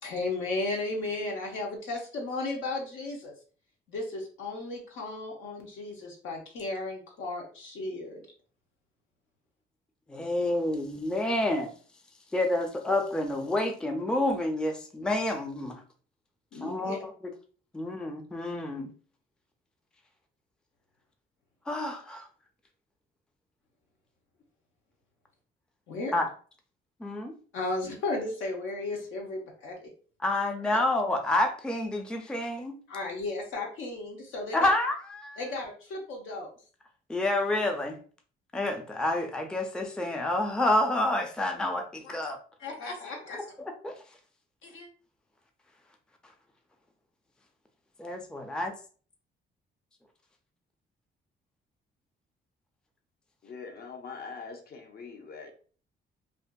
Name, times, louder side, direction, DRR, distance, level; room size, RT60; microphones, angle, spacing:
voice 1, 0.0-3.3 3.9-8.3 16.5-17.0 25.9-26.1 27.5-29.9 32.9-34.7 35.4-36.6 42.0-42.2 42.6-43.5 44.6-44.9, left 2 dB, 85° left, 0.8 m, -35 dB
voice 2, 10.1-11.7 12.3-15.8 16.6-17.0 17.7-18.9 21.7-22.3 26.1-26.2 27.0-27.3 30.2-32.8 34.5-35.4 37.1-38.0 38.5-42.4 43.6-44.0 48.0-48.7, left 1 dB, 5° left, 0.4 m, -28 dB
voice 3, 53.4-55.5, left 5 dB, 50° left, 0.6 m, -43 dB
2.5 x 2.5 x 2.2 m
cardioid pair, 90°, 20 cm